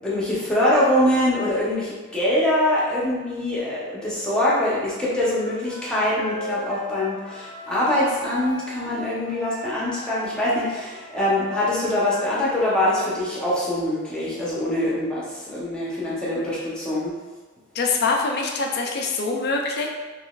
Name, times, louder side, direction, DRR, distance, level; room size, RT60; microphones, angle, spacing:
voice 1, 0.0-17.1, left 1 dB, 5° left, -8 dB, 0.8 m, -23 dB
Wind instrument woodwind instrument, 5.1-13.4, left 1 dB, 60° right, 0.8 m, -37 dB
voice 2, 17.8-19.9, left 3 dB, 50° left, 1 dB, 0.4 m, -24 dB
3.8 x 3.0 x 2.4 m, 1.3 s
head